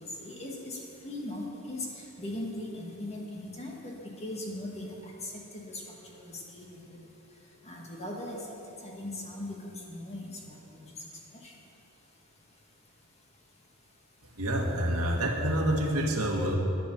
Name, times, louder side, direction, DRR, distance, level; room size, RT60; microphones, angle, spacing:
voice 1, 0.2-1.9 2.2-3.9 4.2-4.9 5.2-5.8 6.1-6.8 7.6-8.4 8.8-10.9 11.4-11.5, left 1 dB, 30° left, -2 dB, 1.9 m, -39 dB
voice 2, 14.2-16.6, right 1 dB, 75° right, 1 dB, 1.8 m, -28 dB
10.5 x 10.0 x 6.9 m, 3.0 s
head